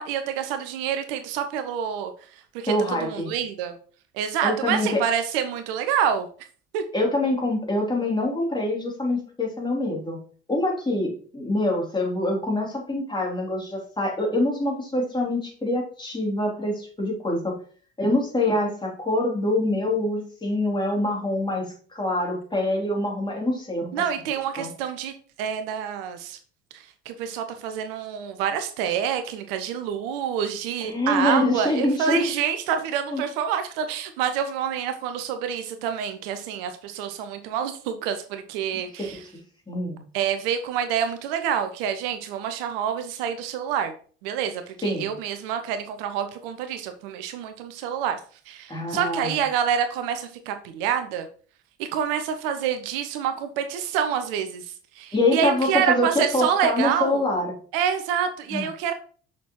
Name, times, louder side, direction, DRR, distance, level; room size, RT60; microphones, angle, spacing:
voice 1, 0.0-3.7 4.1-6.3 6.7-6.8 23.9-25.1 25.4-26.4 26.7-39.2 40.1-43.9 44.2-48.2 48.5-51.3 51.8-57.2 57.7-58.9, right 8 dB, 60° right, 8 dB, 0.8 m, -27 dB
voice 2, 2.7-3.3 4.4-5.0 6.9-10.2 10.5-17.6 18.0-23.9 24.6-24.7 30.8-32.2 33.1-33.2 39.0-39.2 39.7-40.0 44.8-45.1 48.7-49.4 55.1-57.5 58.5-58.7, left 1 dB, 15° left, 0 dB, 3.4 m, -25 dB
6.8 x 5.8 x 3.2 m, 0.43 s
figure-of-eight pair, 60°, 33 cm